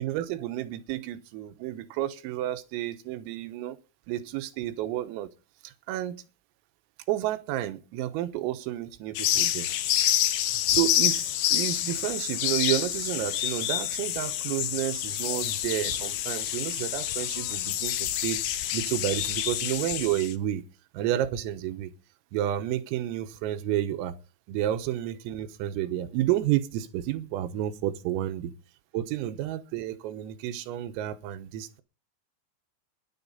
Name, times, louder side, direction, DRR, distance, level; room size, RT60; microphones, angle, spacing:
voice 1, 0.0-3.8 4.1-5.3 5.6-6.2 7.1-9.7 10.7-18.4 18.7-20.6 20.9-21.9 22.3-24.2 24.5-28.5 28.9-31.8, right 13 dB, 85° right, 3.7 m, -31 dB
sound 1, 9.2-20.3, left 12 dB, 75° left, 2.4 m, -28 dB
19.5 x 11.0 x 4.1 m
omnidirectional pair, 5.9 m